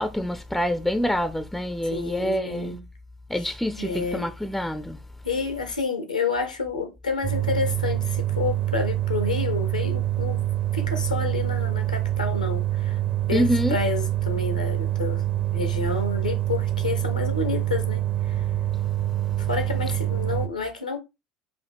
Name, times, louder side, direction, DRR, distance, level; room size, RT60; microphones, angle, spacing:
voice 1, 0.0-2.7 3.3-5.0 13.3-13.7, equal, 5° left, 0.4 m, -26 dB
voice 2, 1.8-2.9 3.3-4.4 5.2-10.5 10.7-13.0 13.3-15.2 15.5-18.5 19.4-21.0, left 4 dB, 85° left, 0.8 m, -30 dB
sound 1, 7.2-20.5, right 13 dB, 35° right, 0.7 m, -26 dB
4.8 x 2.7 x 3.4 m
figure-of-eight pair, 65°, 4 cm